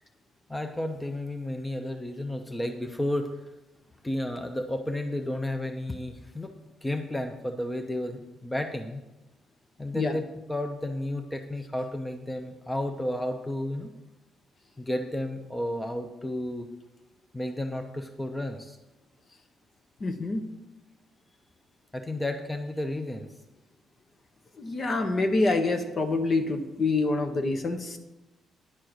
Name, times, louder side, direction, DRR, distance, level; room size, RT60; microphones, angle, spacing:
voice 1, 0.5-3.3 4.0-6.5 6.8-9.0 9.8-13.9 14.8-16.7 17.3-18.8 21.9-23.3, left 1 dB, 10° left, 5 dB, 0.8 m, -32 dB
voice 2, 20.0-20.4 24.6-28.0, left 3 dB, 45° left, 7 dB, 1.0 m, -26 dB
10.0 x 4.5 x 6.5 m, 1.0 s
cardioid pair, 90°, 0 cm